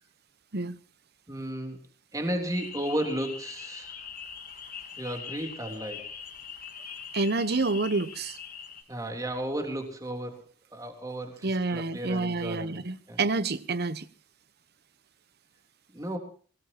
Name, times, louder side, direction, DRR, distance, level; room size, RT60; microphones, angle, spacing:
voice 1, 1.3-1.8 2.1-3.9 5.0-6.1 8.9-12.8 13.1-13.2 15.9-16.2, right 1 dB, 15° right, 3.4 m, -34 dB
sound 1, 2.5-8.8, left 7 dB, 45° left, 2.2 m, -42 dB
voice 2, 7.1-8.4 11.4-14.1, right 3 dB, 50° right, 0.9 m, -28 dB
24.5 x 18.0 x 2.9 m
head